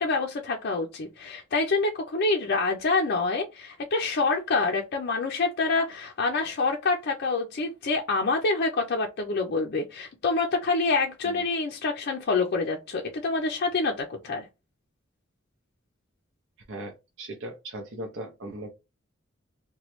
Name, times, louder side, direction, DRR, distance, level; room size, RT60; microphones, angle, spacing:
voice 1, 0.0-14.5, left 3 dB, 50° left, 0.5 m, -26 dB
voice 2, 16.7-18.7, right 1 dB, 65° right, 0.6 m, -38 dB
3.0 x 2.2 x 3.0 m
head